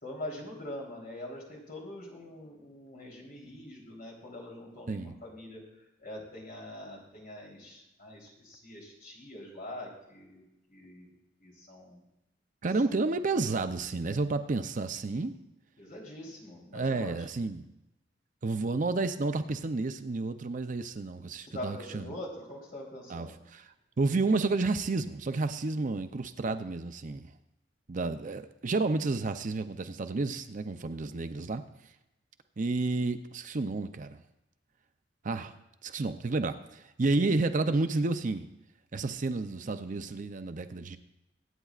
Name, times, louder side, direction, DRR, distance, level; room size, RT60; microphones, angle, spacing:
voice 1, 0.0-5.6 6.0-10.4 10.7-11.1 11.4-12.0 15.8-17.1 21.5-23.3, left 1 dB, 50° left, -2 dB, 3.6 m, -43 dB
voice 2, 12.6-15.3 16.7-17.6 18.4-22.1 23.1-23.7 24.0-27.3 27.9-31.6 32.6-34.2 35.2-35.5 35.8-38.5 38.9-41.0, right 3 dB, 45° right, 9 dB, 0.5 m, -31 dB
23.0 x 9.0 x 2.4 m, 0.88 s
head